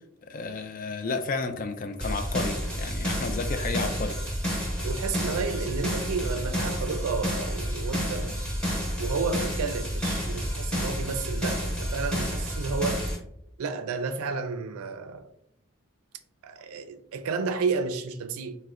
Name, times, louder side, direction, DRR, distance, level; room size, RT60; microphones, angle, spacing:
voice 1, 0.3-4.2, left 4 dB, 40° left, 0.3 m, -32 dB
sound 1, 2.0-13.2, equal, 5° left, 0.7 m, -30 dB
voice 2, 4.8-8.6 9.0-13.0 13.6-15.3 16.4-18.6, right 4 dB, 85° right, 0.4 m, -31 dB
4.2 x 2.1 x 2.4 m
head